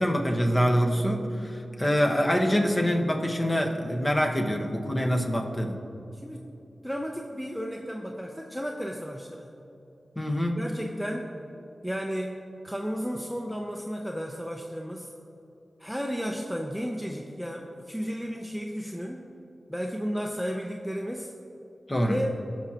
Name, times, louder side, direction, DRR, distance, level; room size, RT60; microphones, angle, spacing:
voice 1, 0.0-5.8 10.2-10.6 21.9-22.2, equal, 25° left, 2 dB, 1.1 m, -25 dB
voice 2, 6.8-9.5 10.6-11.3 11.8-15.1 15.8-19.3 19.7-21.3 22.1-22.4, equal, ahead, 2 dB, 0.6 m, -33 dB
17.0 x 6.1 x 2.9 m, 2.9 s
cardioid pair, 55°, 0 cm